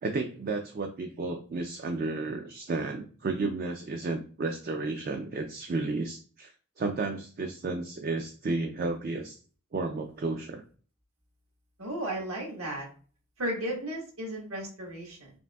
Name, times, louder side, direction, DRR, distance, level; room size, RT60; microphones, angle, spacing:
voice 1, 0.0-9.4 9.7-10.6, right 3 dB, 40° right, 5 dB, 0.3 m, -32 dB
voice 2, 11.8-12.9 13.4-15.3, right 1 dB, 75° right, -1 dB, 1.4 m, -34 dB
5.0 x 2.6 x 2.3 m, 0.41 s
head